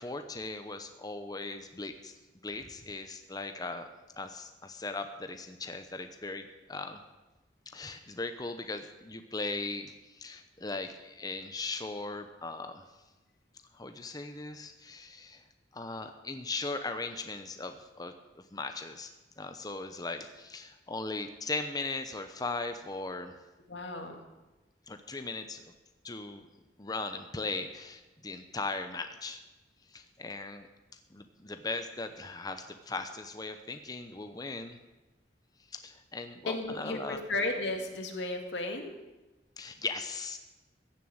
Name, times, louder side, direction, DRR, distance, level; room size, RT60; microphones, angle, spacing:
voice 1, 0.0-2.1 2.4-3.9 4.2-7.0 7.7-12.8 13.7-15.4 15.7-19.1 19.4-23.3 24.9-25.6 26.0-26.5 26.8-29.4 29.9-30.7 31.1-34.8 35.7-37.2 39.6-40.4, left 3 dB, 20° left, 7 dB, 0.8 m, -38 dB
voice 2, 23.7-24.2 36.5-38.9, left 2 dB, 85° left, 4 dB, 2.2 m, -34 dB
15.0 x 7.4 x 8.8 m, 1.1 s
head